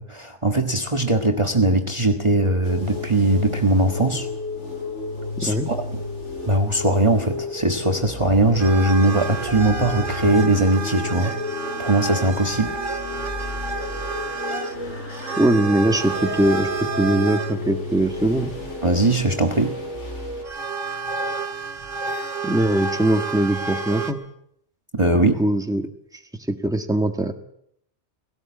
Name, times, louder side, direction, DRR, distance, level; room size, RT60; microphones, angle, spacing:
voice 1, 0.0-4.3 5.4-5.8 6.4-11.3 11.8-12.8 18.8-19.8 24.9-25.3, right 2 dB, 25° right, 4 dB, 1.6 m, -20 dB
sound 1, 2.6-20.4, left 2 dB, 70° left, 6.0 m, -32 dB
voice 2, 5.4-5.7 15.4-16.7 17.0-18.5 22.4-24.2 25.2-25.8 26.5-27.3, right 1 dB, 5° right, 5 dB, 1.7 m, -21 dB
sound 2, 8.6-17.6 18.9-19.5 20.4-24.1, right 4 dB, 45° right, 2.9 m, -30 dB
19.5 x 17.5 x 8.6 m, 0.72 s
omnidirectional pair, 1.3 m